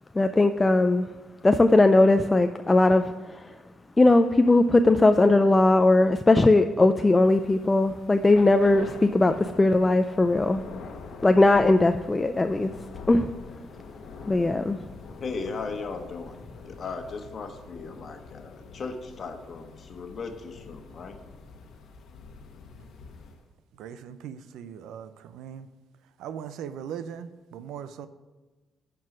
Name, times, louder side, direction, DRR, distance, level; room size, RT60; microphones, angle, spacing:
voice 1, 0.1-1.1 1.4-3.5 4.0-10.6 11.2-12.7 13.1-13.3 14.3-14.8, left 2 dB, 20° left, 0.4 m, -19 dB
Thunder / Rain, 7.2-23.5, left 4 dB, 70° left, 1.0 m, -45 dB
voice 2, 15.2-16.4 16.6-21.1, left 4 dB, 50° left, 1.2 m, -37 dB
voice 3, 23.8-25.7 26.2-28.1, right 8 dB, 85° right, 0.5 m, -39 dB
11.0 x 4.7 x 6.0 m
cardioid pair, 90°, 0 cm